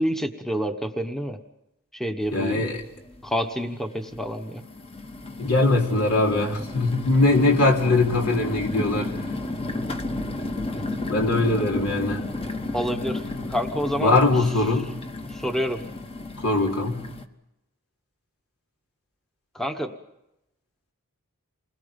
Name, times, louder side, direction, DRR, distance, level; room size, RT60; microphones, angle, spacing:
voice 1, 0.0-1.4 1.9-2.6 3.2-4.6 12.7-13.2 13.5-14.1 15.3-15.8 19.5-19.9, equal, ahead, 5 dB, 1.1 m, -28 dB
sound 1, 2.2-2.3 2.8-3.4 4.1-17.2, left 2 dB, 25° left, 1.3 m, -33 dB
voice 2, 2.3-2.8 5.4-9.1 11.1-12.2 14.0-14.9 16.4-17.1, left 2 dB, 75° left, 1 dB, 3.9 m, -21 dB
28.5 x 21.5 x 5.3 m, 0.89 s
head